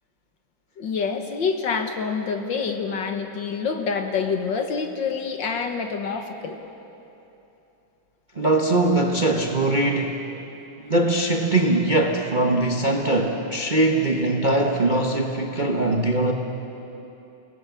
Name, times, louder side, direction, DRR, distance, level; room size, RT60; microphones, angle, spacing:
voice 1, 0.8-6.6, left 5 dB, 60° left, 5 dB, 1.9 m, -27 dB
voice 2, 8.4-10.2 10.8-16.3, right 2 dB, 30° right, 1 dB, 1.0 m, -21 dB
29.0 x 18.0 x 7.1 m, 3.0 s
omnidirectional pair, 2.4 m